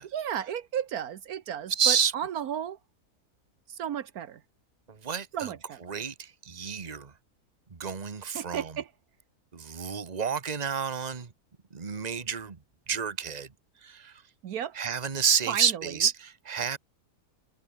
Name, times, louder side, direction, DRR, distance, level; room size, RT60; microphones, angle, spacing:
voice 1, 0.1-2.8 3.7-4.4 5.3-5.8 8.3-8.9 14.4-14.8 15.5-15.9, right 9 dB, 75° right, 1.4 m, -33 dB
voice 2, 1.7-2.1 4.9-5.5 5.8-7.1 7.7-8.7 9.5-11.3 11.7-12.6 12.9-13.5 13.8-14.2 14.7-16.8, right 7 dB, 30° right, 1.4 m, -29 dB
omnidirectional pair, 1.6 m